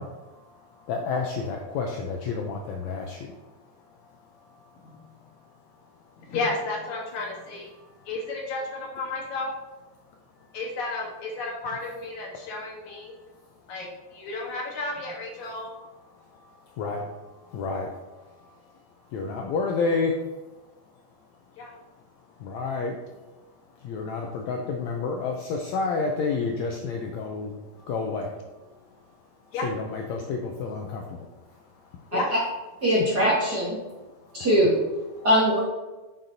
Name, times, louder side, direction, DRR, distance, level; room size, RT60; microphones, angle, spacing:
voice 1, 0.0-3.3 4.4-4.8 7.8-7.9 16.4-18.6 19.1-20.2 22.4-23.0 23.8-28.4 29.6-31.3 34.4-34.5 35.1-35.3, left 4 dB, 85° left, 2 dB, 1.6 m, -30 dB
voice 2, 6.2-7.7 8.1-9.5 10.5-13.1 13.7-15.7 21.6-21.7 29.5-29.7 32.1-32.3, left 3 dB, 65° left, -1 dB, 2.5 m, -32 dB
voice 3, 32.8-33.8 34.3-34.8 35.2-35.6, equal, 45° right, -7 dB, 1.4 m, -21 dB
7.6 x 7.6 x 2.7 m, 1.1 s
omnidirectional pair, 4.0 m